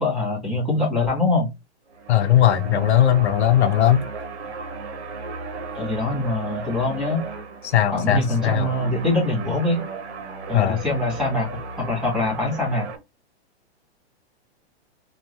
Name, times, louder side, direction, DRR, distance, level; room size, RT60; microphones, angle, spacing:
voice 1, 0.0-1.5 5.7-7.2 7.9-9.8 10.5-11.5 11.8-12.9, left 2 dB, ahead, 2.1 m, -23 dB
sound 1, 1.9-13.0, right 4 dB, 80° right, 1.3 m, -35 dB
voice 2, 2.1-4.0 7.6-8.7 10.5-10.8, left 11 dB, 80° left, 0.9 m, -18 dB
4.5 x 2.7 x 2.7 m
hypercardioid pair, 170°, 33 cm